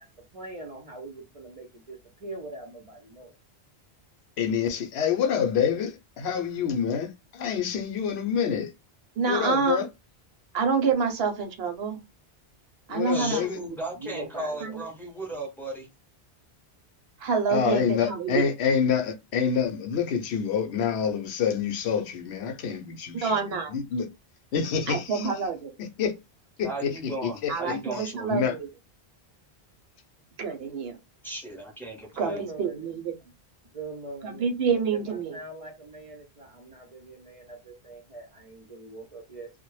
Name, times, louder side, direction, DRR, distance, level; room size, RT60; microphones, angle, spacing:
voice 1, 0.3-3.3 13.9-14.8 32.3-32.9 33.7-34.5 34.9-39.5, right 2 dB, 40° right, 0.5 m, -41 dB
voice 2, 4.4-8.7 9.3-9.9 12.9-13.6 17.5-23.4 23.7-24.1 24.5-25.3 25.8-26.1 26.6-27.6 27.9-28.5, left 7 dB, 75° left, 0.8 m, -27 dB
voice 3, 9.2-9.8 10.5-12.0 12.9-13.8 14.6-14.8 17.2-18.4 23.2-23.7 24.9-25.7 27.5-28.7 30.4-31.0 32.2-33.1 34.2-35.3, right 5 dB, 70° right, 0.8 m, -27 dB
voice 4, 13.1-15.9 26.6-28.4 31.2-32.4, right 1 dB, ahead, 0.7 m, -36 dB
2.1 x 2.0 x 3.0 m
omnidirectional pair, 1.1 m